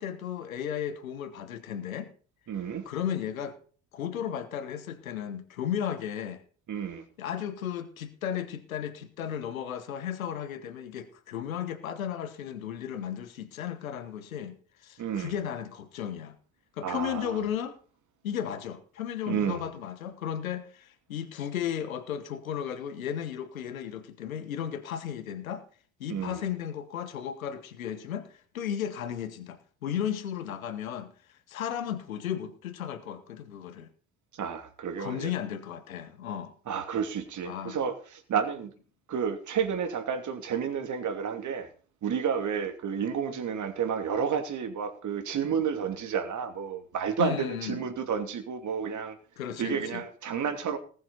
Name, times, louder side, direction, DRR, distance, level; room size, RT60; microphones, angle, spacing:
voice 1, 0.0-2.1 2.8-3.6 3.9-6.4 7.2-16.3 16.7-17.8 18.2-25.6 26.0-31.1 31.5-33.9 35.0-36.5 37.4-37.8 47.2-47.8 49.4-50.0, left 9 dB, 80° left, 1.4 m, -34 dB
voice 2, 2.5-2.9 6.7-7.0 15.0-15.3 16.8-17.4 19.3-19.6 26.1-26.4 34.3-35.3 36.7-38.7 39.1-41.7 42.0-49.2 49.6-50.8, right 7 dB, 45° right, 2.8 m, -31 dB
19.5 x 7.3 x 4.1 m
figure-of-eight pair, 55°, 41 cm